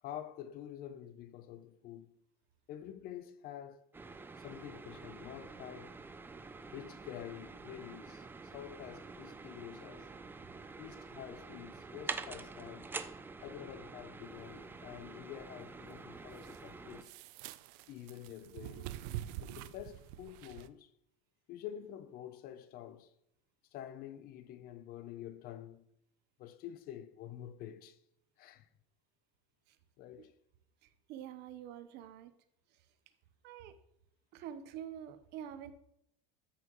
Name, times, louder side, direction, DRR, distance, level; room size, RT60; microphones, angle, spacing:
voice 1, 0.0-2.1 2.7-3.8 4.4-6.0 6.7-10.1 10.8-12.9 13.4-17.1 17.9-18.9 19.4-20.9 21.5-23.1 23.7-25.8 26.4-28.0 28.4-28.7 30.0-30.4, left 11 dB, 45° left, 0.7 m, -48 dB
sound 1, 3.9-17.0, right 4 dB, 10° right, 0.4 m, -47 dB
sound 2, 14.2-20.7, right 13 dB, 70° right, 0.6 m, -47 dB
voice 2, 30.8-32.3 33.4-33.7 34.3-35.7, right 10 dB, 55° right, 0.9 m, -46 dB
14.0 x 5.9 x 3.1 m
cardioid pair, 140°, 21 cm